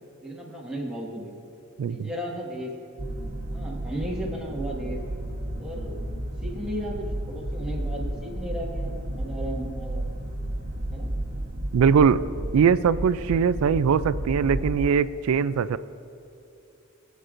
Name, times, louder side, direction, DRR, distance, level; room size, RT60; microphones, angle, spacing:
voice 1, 0.2-1.3 1.9-2.7 3.5-5.0 5.6-6.0 6.4-10.1 10.9-11.1, equal, 5° right, -4 dB, 1.6 m, -35 dB
voice 2, 1.8-2.1 11.7-12.2 12.5-15.8, right 6 dB, 75° right, 15 dB, 0.3 m, -21 dB
sound 1, 3.0-14.9, right 1 dB, 45° right, 1.1 m, -32 dB
22.0 x 8.1 x 2.5 m, 2.6 s
head